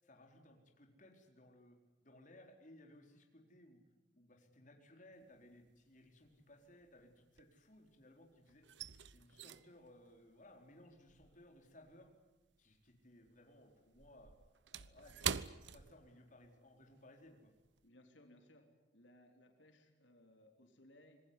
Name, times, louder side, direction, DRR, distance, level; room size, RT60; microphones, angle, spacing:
voice 1, 0.0-3.8 4.1-8.6 9.1-12.1 12.6-14.3 14.7-17.5, left 1 dB, 45° left, 2 dB, 4.3 m, -62 dB
sound 1, 5.2-5.8 6.0-8.0 8.3-13.0 13.3-16.6 16.9-17.1 17.6-17.8, right 8 dB, 70° right, 0.9 m, -46 dB
voice 2, 17.8-18.6 18.9-21.2, left 1 dB, 90° left, 4 dB, 3.7 m, -64 dB
27.0 x 20.0 x 9.8 m, 1.1 s
head